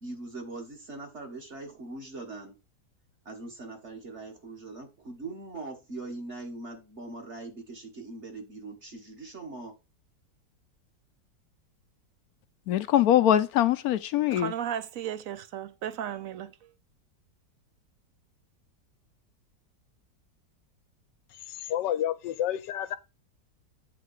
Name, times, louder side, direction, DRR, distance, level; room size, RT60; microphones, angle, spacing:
voice 1, 0.0-2.6 3.3-9.7, right 2 dB, 40° right, 1.8 m, -41 dB
voice 2, 12.7-14.5, left 11 dB, 70° left, 0.9 m, -22 dB
voice 3, 14.3-16.7, right 9 dB, 65° right, 0.9 m, -35 dB
voice 4, 21.3-23.0, left 11 dB, 90° left, 1.3 m, -30 dB
8.2 x 3.8 x 5.5 m
omnidirectional pair, 1.9 m